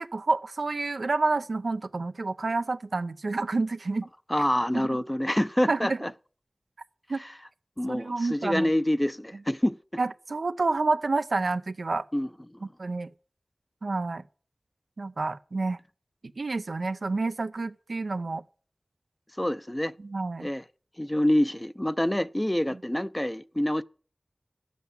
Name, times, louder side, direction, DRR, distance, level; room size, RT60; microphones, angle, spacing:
voice 1, 0.0-4.1 4.7-4.8 5.7-6.0 7.1-7.2 7.9-8.7 10.0-12.0 12.8-13.1 13.8-14.2 15.0-15.8 16.4-18.4 20.0-20.5, right 3 dB, 90° right, 0.6 m, -29 dB
voice 2, 4.3-6.1 7.2-7.3 7.8-9.8 12.1-12.6 19.4-19.9 20.4-20.6 21.0-23.8, left 1 dB, 15° left, 0.5 m, -26 dB
12.0 x 8.2 x 7.3 m
wide cardioid pair, 50°, 0 cm